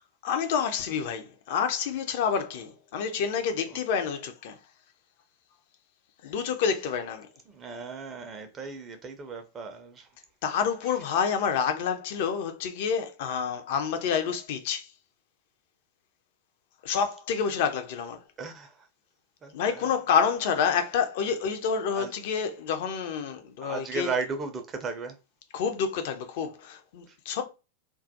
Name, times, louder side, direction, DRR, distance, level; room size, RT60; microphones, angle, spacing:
voice 1, 0.2-4.5 6.2-7.3 10.4-14.9 16.8-18.2 19.5-24.1 25.5-27.4, left 7 dB, 50° left, 0.4 m, -28 dB
voice 2, 7.5-10.1 18.4-18.7 19.4-19.9 21.9-22.1 23.6-25.2 27.1-27.2, right 4 dB, 25° right, 0.4 m, -35 dB
2.2 x 2.1 x 2.6 m
figure-of-eight pair, 90°, 0 cm